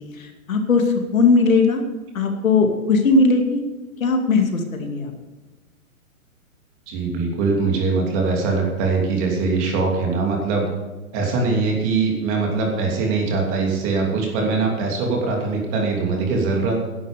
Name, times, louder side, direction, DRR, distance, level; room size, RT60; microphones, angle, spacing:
voice 1, 0.2-0.8 1.1-1.8 2.1-3.6 4.0-5.1, left 3 dB, 65° left, 4 dB, 2.6 m, -18 dB
voice 2, 6.9-10.7 11.1-16.9, right 4 dB, 25° right, 0 dB, 2.9 m, -22 dB
13.0 x 11.0 x 5.2 m, 1.2 s
hypercardioid pair, 155°, 43 cm